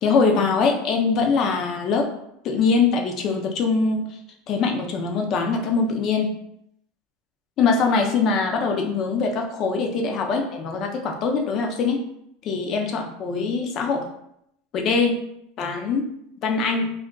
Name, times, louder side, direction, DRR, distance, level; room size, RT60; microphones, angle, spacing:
voice 1, 0.0-2.1 2.4-4.1 4.5-6.3 7.6-12.0 12.4-14.1 14.7-15.2 15.6-16.1 16.4-16.9, left 4 dB, 45° left, 3 dB, 0.5 m, -22 dB
2.4 x 2.1 x 3.7 m, 0.77 s
supercardioid pair, 110°, 0 cm